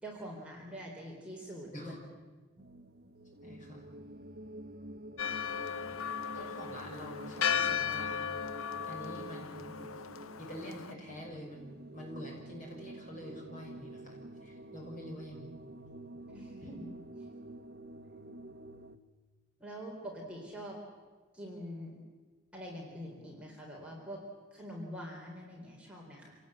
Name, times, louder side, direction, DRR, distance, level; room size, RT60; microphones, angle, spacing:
voice 1, 0.0-1.9 16.3-16.9 19.6-20.8 21.3-22.0 22.5-24.2 24.5-26.4, equal, 5° right, -3 dB, 3.8 m, -44 dB
voice 2, 1.7-2.0 3.4-3.8 6.3-8.2 8.9-9.8 10.4-15.5 16.1-16.2, equal, 35° left, -1 dB, 6.4 m, -46 dB
sound 1, 2.6-19.0, right 1 dB, 45° right, 1.0 m, -48 dB
Church bell, 5.2-10.9, left 7 dB, 85° left, 0.8 m, -36 dB
27.0 x 17.5 x 8.8 m, 1.4 s
head